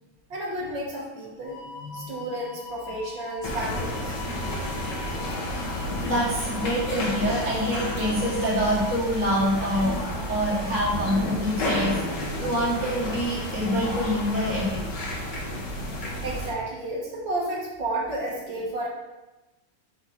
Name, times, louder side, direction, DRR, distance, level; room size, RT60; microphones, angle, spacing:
voice 1, 0.3-1.6 1.9-4.2 8.1-8.2 12.4-12.5 16.2-18.9, right 1 dB, 60° right, -4 dB, 1.2 m, -32 dB
sound 1, 1.4-9.0, left 4 dB, 90° left, 2.6 m, -42 dB
voice 2, 1.8-2.3 6.1-10.0 10.3-14.8, equal, 10° left, -9 dB, 1.0 m, -26 dB
sound 2, 3.4-16.5, left 1 dB, 65° left, 1.0 m, -31 dB
6.0 x 3.4 x 5.0 m, 1.1 s
omnidirectional pair, 3.5 m